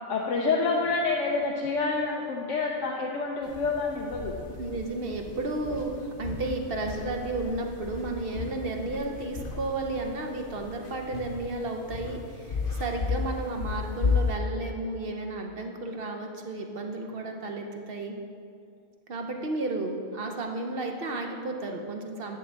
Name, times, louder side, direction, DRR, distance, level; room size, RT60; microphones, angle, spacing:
voice 1, 0.1-4.4, left 4 dB, 80° left, -2 dB, 1.1 m, -28 dB
sound 1, 3.4-14.4, left 4 dB, 50° left, 1.0 m, -34 dB
voice 2, 4.6-18.2 19.1-22.4, right 2 dB, 55° right, 3 dB, 0.9 m, -33 dB
10.5 x 7.6 x 3.4 m, 2.4 s
omnidirectional pair, 1.3 m